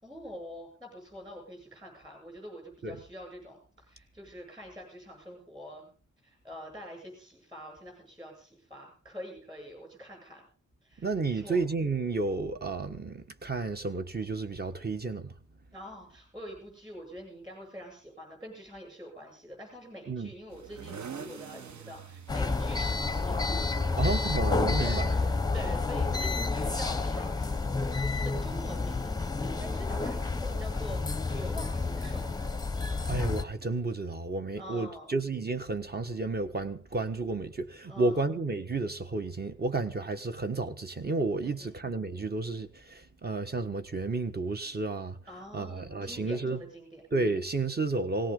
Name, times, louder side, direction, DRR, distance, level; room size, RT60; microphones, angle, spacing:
voice 1, 0.0-5.9 6.2-10.4 10.8-11.1 11.3-11.6 15.7-32.3 34.6-35.1 37.9-38.2 41.4-41.8 45.3-47.0, equal, 15° right, 8.0 m, -45 dB
voice 2, 11.0-15.3 20.1-20.3 24.0-25.1 33.1-45.2 45.5-46.6 47.1-48.3, right 3 dB, 30° right, 1.4 m, -31 dB
sound 1, 20.5-25.5, right 6 dB, 65° right, 1.1 m, -47 dB
sound 2, 22.3-33.4, left 3 dB, 15° left, 0.8 m, -30 dB
18.5 x 18.5 x 3.9 m
wide cardioid pair, 160°, 31 cm